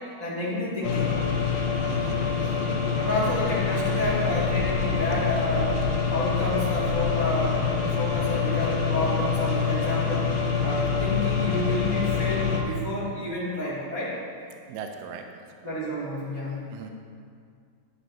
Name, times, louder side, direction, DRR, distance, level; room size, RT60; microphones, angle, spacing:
voice 1, 0.2-1.2 2.9-5.8 6.1-10.3 10.6-14.2 15.6-16.6, left 1 dB, 20° right, -10 dB, 0.6 m, -29 dB
sound 1, 0.8-12.6, left 6 dB, 80° left, 3.1 m, -26 dB
voice 2, 1.9-2.2 14.7-15.2 16.7-16.9, right 7 dB, 80° right, 5 dB, 2.4 m, -38 dB
11.5 x 9.5 x 2.8 m, 2.3 s
omnidirectional pair, 4.8 m